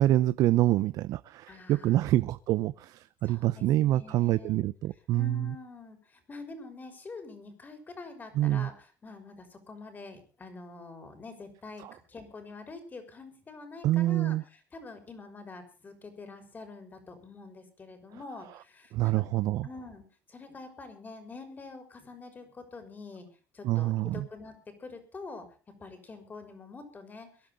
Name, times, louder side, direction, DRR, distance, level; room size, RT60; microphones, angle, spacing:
voice 1, 0.0-5.5 8.4-8.7 11.8-11.9 13.8-14.4 18.9-19.7 23.6-24.3, right 14 dB, 65° right, 15 dB, 0.6 m, -26 dB
voice 2, 1.5-2.1 3.2-4.6 5.1-19.3 19.6-20.0 20.3-23.3 23.5-25.5 25.8-27.5, left 3 dB, 25° left, 6 dB, 6.1 m, -46 dB
23.0 x 11.5 x 3.9 m, 0.36 s
cardioid pair, 110°, 7 cm